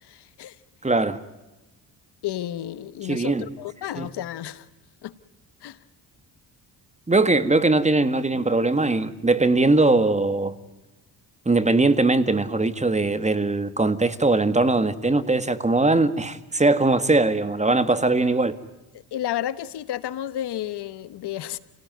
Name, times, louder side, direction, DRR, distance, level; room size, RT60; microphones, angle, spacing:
voice 1, 0.0-0.6 2.2-4.7 5.0-5.1 5.6-5.8 7.1-7.2 19.1-21.6, left 12 dB, 75° left, 15 dB, 1.3 m, -32 dB
voice 2, 0.8-1.2 3.1-3.5 4.0-4.1 7.1-10.5 11.5-18.6, right 2 dB, 15° right, 12 dB, 1.8 m, -20 dB
29.5 x 18.0 x 9.3 m, 1.0 s
cardioid pair, 85°, 40 cm